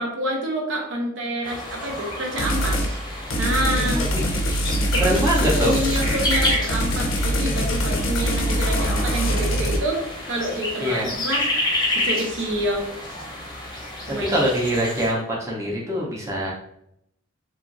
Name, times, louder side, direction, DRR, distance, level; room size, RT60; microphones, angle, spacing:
voice 1, 0.0-2.8 3.4-4.0 4.9-5.3 5.6-10.0 10.3-11.4 11.9-12.8 14.1-14.4, right 1 dB, 70° right, 0 dB, 0.6 m, -27 dB
sound 1, 1.4-15.1, left 1 dB, 20° left, 0.7 m, -30 dB
sound 2, 2.4-2.9 3.3-9.8, equal, 80° left, 0.5 m, -23 dB
voice 2, 3.8-4.3 5.0-5.8 10.8-11.1 14.3-16.5, equal, 15° right, -5 dB, 0.6 m, -24 dB
2.8 x 2.4 x 2.5 m, 0.76 s
head